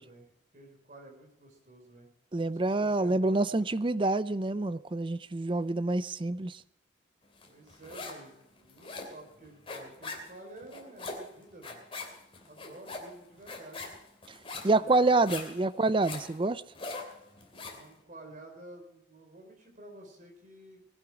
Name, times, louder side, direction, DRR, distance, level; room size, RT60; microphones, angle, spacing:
voice 1, 0.0-2.1 2.5-3.9 7.4-11.8 12.4-13.9 14.6-15.5 17.6-20.9, right 2 dB, 40° right, 4.6 m, -51 dB
voice 2, 2.3-6.6 14.6-16.6, right 2 dB, 25° right, 0.5 m, -27 dB
sound 1, 7.4-8.3 8.6-17.9, left 3 dB, 30° left, 2.9 m, -42 dB
20.0 x 11.5 x 4.9 m
head